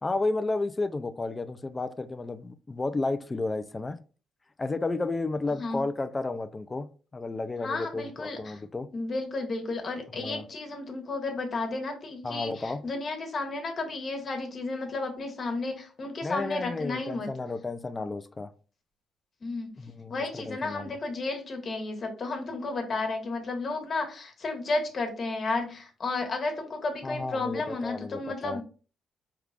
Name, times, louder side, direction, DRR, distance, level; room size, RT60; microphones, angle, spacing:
voice 1, 0.0-4.0 4.6-6.9 7.1-8.9 10.2-10.5 12.2-12.8 16.2-18.5 19.8-20.9 27.0-28.6, left 3 dB, 25° left, 0.4 m, -32 dB
voice 2, 7.6-8.6 8.9-17.3 19.4-19.7 20.1-28.6, left 3 dB, 45° left, 1.3 m, -32 dB
4.7 x 3.5 x 2.4 m
cardioid pair, 90°, 0 cm